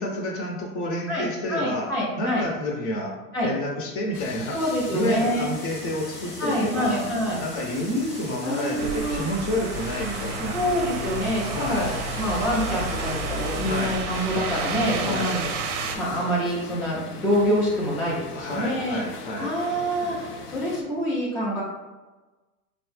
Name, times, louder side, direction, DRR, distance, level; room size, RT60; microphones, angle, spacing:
voice 1, 0.0-3.1 3.4-4.6 4.9-7.0 7.4-10.6 11.5-11.9 13.7-14.0 15.0-15.3 18.3-19.5, left 1 dB, 30° left, -1 dB, 0.8 m, -29 dB
voice 2, 1.1-2.5 3.3-3.5 4.5-5.5 6.4-7.4 8.4-9.2 10.5-15.5 15.9-19.0 19.4-21.6, equal, 10° left, -8 dB, 0.3 m, -26 dB
sound 1, 4.1-20.8, left 4 dB, 90° left, 0.6 m, -40 dB
sound 2, 4.5-14.1, right 4 dB, 15° right, 0.7 m, -43 dB
sound 3, 8.8-16.0, right 3 dB, 55° right, 0.6 m, -31 dB
3.3 x 2.1 x 3.2 m, 1.2 s
hypercardioid pair, 105°, 45 cm